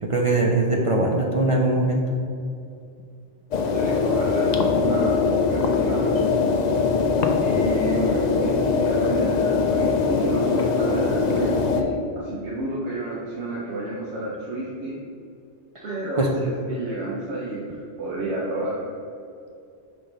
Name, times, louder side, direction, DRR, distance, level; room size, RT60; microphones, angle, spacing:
voice 1, 0.0-2.1 15.7-15.8 16.2-16.3, right 2 dB, 45° right, 0 dB, 0.4 m, -21 dB
sound 1, 3.5-11.8, left 4 dB, 55° left, 0.5 m, -22 dB
voice 2, 3.7-6.2 7.4-15.0 15.8-18.9, right 2 dB, 80° right, -6 dB, 1.2 m, -31 dB
5.3 x 3.7 x 5.2 m, 2.5 s
omnidirectional pair, 1.2 m